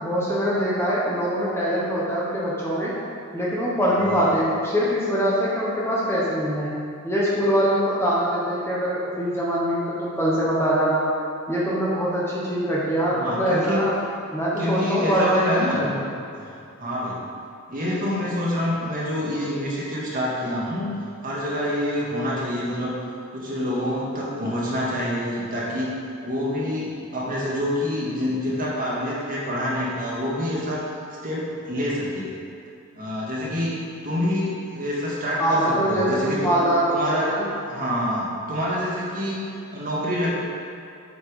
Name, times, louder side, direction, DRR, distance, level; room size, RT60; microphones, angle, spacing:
voice 1, 0.0-2.9 3.3-6.8 7.0-11.1 11.5-13.9 14.3-16.0 35.4-37.5, equal, 10° left, -7 dB, 1.2 m, -23 dB
voice 2, 13.1-13.9 14.6-15.9 16.4-16.5 16.8-17.2 17.7-20.9 21.2-23.0 23.3-25.9 26.2-30.8 31.2-32.3 33.0-36.6 36.9-37.3 37.7-40.3, left 1 dB, 40° right, -6 dB, 1.9 m, -27 dB
8.1 x 5.9 x 5.0 m, 2.6 s
head